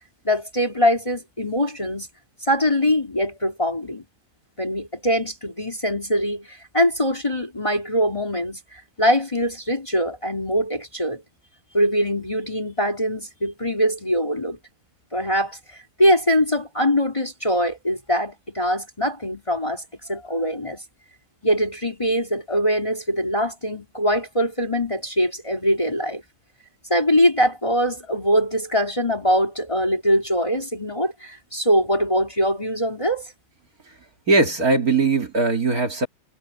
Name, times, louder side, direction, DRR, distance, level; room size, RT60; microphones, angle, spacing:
voice 1, 0.2-2.1 2.4-4.0 4.6-11.2 11.7-14.6 15.1-20.8 21.4-26.2 26.9-33.3, equal, 15° left, 2.7 m, -22 dB
voice 2, 34.3-36.1, right 3 dB, 45° right, 2.8 m, -19 dB
omnidirectional pair, 2.3 m